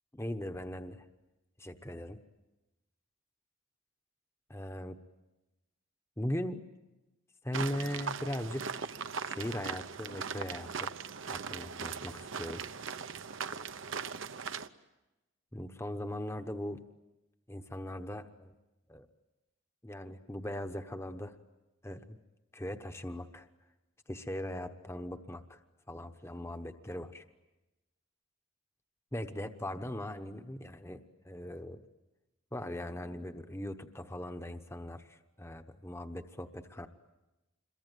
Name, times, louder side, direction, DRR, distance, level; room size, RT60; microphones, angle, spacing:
voice 1, 0.1-1.0 1.6-2.2 4.5-5.0 6.2-6.6 7.4-8.8 9.2-10.9 11.3-12.6 15.5-16.8 17.5-18.5 18.9-19.1 19.8-21.3 21.8-22.2 22.5-23.5 24.1-25.6 25.9-27.2 29.1-31.8 32.5-36.9, left 1 dB, 10° left, 8 dB, 1.0 m, -39 dB
sound 1, 7.5-14.7, right 6 dB, 65° right, 0.9 m, -39 dB
27.5 x 22.5 x 9.3 m, 1.0 s
head